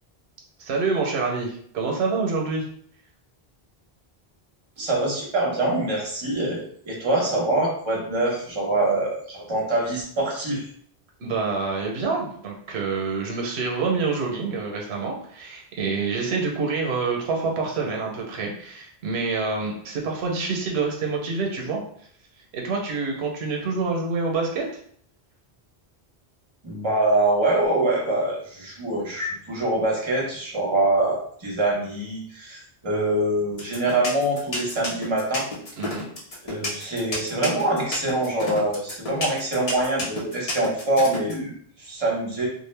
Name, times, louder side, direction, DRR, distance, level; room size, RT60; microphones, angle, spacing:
voice 1, 0.6-2.6 11.2-21.8 22.5-24.6 35.8-36.1, right 4 dB, 90° right, 0 dB, 0.9 m, -27 dB
voice 2, 4.8-10.7 26.6-35.4 36.5-42.5, right 2 dB, 30° right, -2 dB, 0.7 m, -24 dB
sound 1, 33.6-41.3, left 1 dB, 40° left, 0.7 m, -30 dB
2.5 x 2.0 x 3.2 m, 0.62 s
omnidirectional pair, 1.0 m